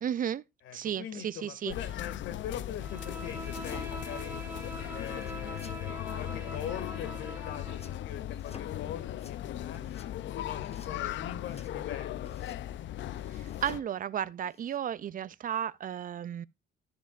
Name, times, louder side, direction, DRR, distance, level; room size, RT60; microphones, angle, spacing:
voice 1, 0.0-0.4 0.7-1.7 13.3-16.5, right 9 dB, 45° right, 0.4 m, -34 dB
voice 2, 0.6-4.4 4.9-9.9 10.3-12.4, left 9 dB, 90° left, 2.1 m, -42 dB
sound 1, 1.7-13.8, left 12 dB, 70° left, 0.5 m, -38 dB
Bowed string instrument, 2.8-8.0, right 1 dB, 10° right, 3.1 m, -43 dB
sound 2, 3.4-4.2 5.1-5.8 7.7-8.0 8.4-8.8 9.1-9.4 9.7-10.1 10.6-10.9 11.5-11.7 12.3-12.7 13.1-14.0 14.4-14.8, left 5 dB, 30° left, 1.0 m, -53 dB
14.0 x 7.1 x 2.5 m
cardioid pair, 90°, 20 cm